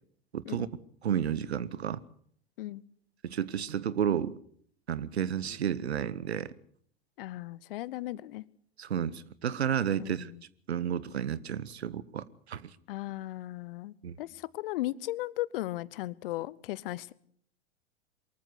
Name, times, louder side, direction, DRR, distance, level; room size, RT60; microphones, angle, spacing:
voice 1, 0.3-0.7 1.0-2.0 3.2-4.4 4.9-6.5 8.8-10.3 10.7-12.7 14.0-14.1, right 9 dB, 80° right, 1.1 m, -31 dB
voice 2, 7.2-8.4 10.0-10.4 12.9-17.1, left 16 dB, 60° left, 0.9 m, -36 dB
23.5 x 14.0 x 8.2 m
hypercardioid pair, 100°, 32 cm